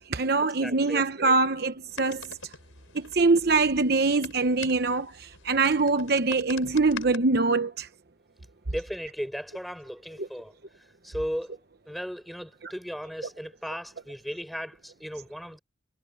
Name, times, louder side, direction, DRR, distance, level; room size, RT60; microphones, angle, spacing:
voice 1, 0.0-2.3 2.9-7.9 10.2-10.3, right 3 dB, 50° right, 0.9 m, -24 dB
voice 2, 0.6-1.0 8.7-10.5 11.0-11.6 11.8-15.6, equal, ahead, 5.0 m, -36 dB
sound 1, 1.9-7.2, left 5 dB, 90° left, 5.4 m, -44 dB
head